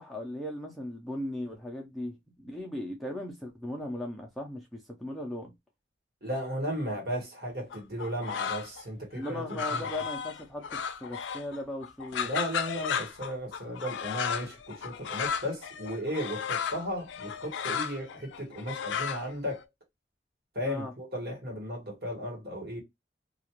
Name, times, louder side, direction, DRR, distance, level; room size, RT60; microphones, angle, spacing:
voice 1, 0.0-5.5 9.1-12.3 20.6-20.9, left 1 dB, ahead, 0.5 m, -37 dB
voice 2, 6.2-9.9 12.2-19.6 20.5-22.8, equal, 55° right, 1.3 m, -35 dB
sound 1, 7.7-8.8 9.2-11.6 11.8-19.6, left 7 dB, 85° left, 0.4 m, -34 dB
2.4 x 2.3 x 2.9 m
head